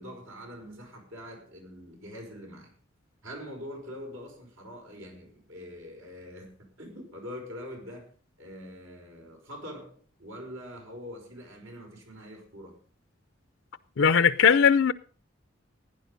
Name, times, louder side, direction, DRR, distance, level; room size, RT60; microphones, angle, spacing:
voice 1, 0.0-2.7 3.2-8.1 8.4-12.8, equal, 85° right, 5.6 m, -44 dB
voice 2, 14.0-14.9, left 7 dB, 80° left, 0.5 m, -19 dB
15.5 x 9.9 x 5.2 m
head